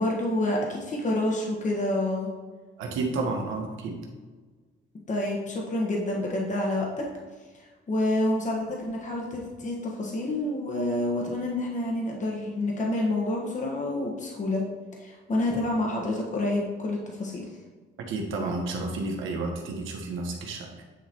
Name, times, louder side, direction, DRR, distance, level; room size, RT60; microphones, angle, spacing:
voice 1, 0.0-2.3 5.1-7.0 7.9-14.6 15.0-17.5, left 1 dB, 40° left, -1 dB, 1.4 m, -28 dB
voice 2, 2.8-4.0 18.1-20.8, right 3 dB, 90° right, 1 dB, 1.3 m, -31 dB
9.1 x 3.1 x 4.4 m, 1.4 s
cardioid pair, 90°, 20 cm